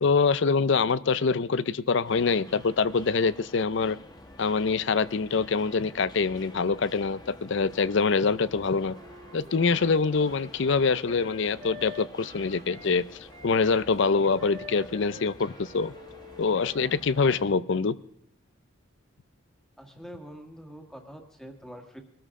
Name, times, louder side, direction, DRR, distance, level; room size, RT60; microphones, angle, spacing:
voice 1, 0.0-4.0 4.4-9.0 9.3-13.1 13.4-15.9 16.4-18.0, left 4 dB, 60° left, 17 dB, 0.5 m, -25 dB
sound 1, 2.0-17.5, left 1 dB, 20° left, 1.2 m, -49 dB
Wind instrument woodwind instrument, 8.9-12.9 13.3-17.5, left 1 dB, 40° right, 1.3 m, -47 dB
voice 2, 19.8-22.0, equal, ahead, 3 dB, 1.6 m, -45 dB
22.0 x 13.5 x 3.7 m, 0.73 s
head